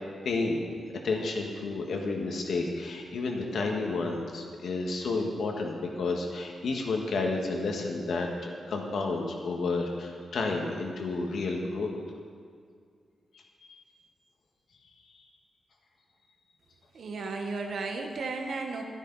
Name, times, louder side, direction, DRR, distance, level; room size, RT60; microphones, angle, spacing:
voice 1, 0.2-0.7 0.9-11.9 13.7-13.8, left 3 dB, 65° left, 1 dB, 1.6 m, -31 dB
voice 2, 16.9-18.8, right 3 dB, 60° right, 3 dB, 1.3 m, -34 dB
13.5 x 9.8 x 4.1 m, 2.1 s
wide cardioid pair, 125°, 0 cm